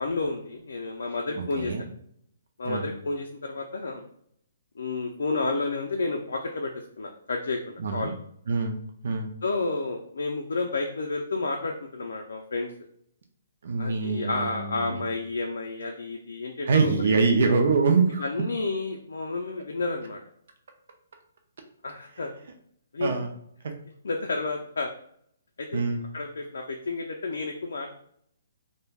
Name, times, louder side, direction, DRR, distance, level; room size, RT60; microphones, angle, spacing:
voice 1, 0.0-1.7 2.6-4.0 4.8-8.1 9.4-12.7 13.8-17.1 18.2-20.2 21.8-22.3 22.9-23.2 24.0-24.9 25.6-25.9 26.1-27.9, left 3 dB, 80° left, 2 dB, 0.3 m, -31 dB
voice 2, 1.4-1.8 2.6-2.9 7.8-8.1 8.5-8.8 9.0-9.3 13.6-15.0 16.7-18.2 23.0-23.3 23.6-23.8 25.7-26.0, right 4 dB, 50° right, 4 dB, 0.4 m, -24 dB
3.2 x 2.1 x 2.3 m, 0.68 s
hypercardioid pair, 175°, 0 cm